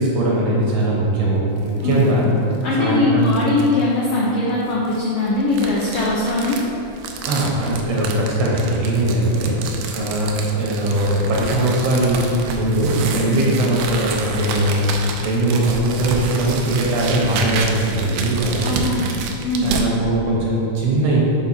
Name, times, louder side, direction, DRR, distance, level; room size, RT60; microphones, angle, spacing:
voice 1, 0.0-2.3 2.8-3.3 7.3-18.8 19.6-21.2, right 1 dB, 65° right, -4 dB, 1.8 m, -20 dB
Tearing flesh, 1.6-2.1 2.5-2.6 3.2-3.8 4.6-19.9, right 4 dB, 85° right, 1.5 m, -29 dB
voice 2, 2.6-6.6 13.3-13.4 18.6-19.0 19.4-19.7, left 2 dB, 85° left, -5 dB, 1.3 m, -20 dB
5.1 x 5.0 x 4.2 m, 2.7 s
omnidirectional pair, 3.6 m